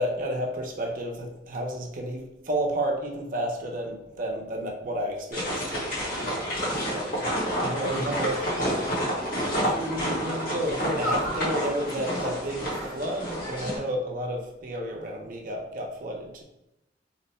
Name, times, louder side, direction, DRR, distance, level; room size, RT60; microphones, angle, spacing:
voice 1, 0.0-7.2 7.6-9.2 9.6-16.4, equal, 50° right, 0 dB, 0.7 m, -32 dB
sound 1, 5.3-13.8, equal, 55° left, 1.2 m, -29 dB
2.9 x 2.1 x 4.1 m, 0.88 s
head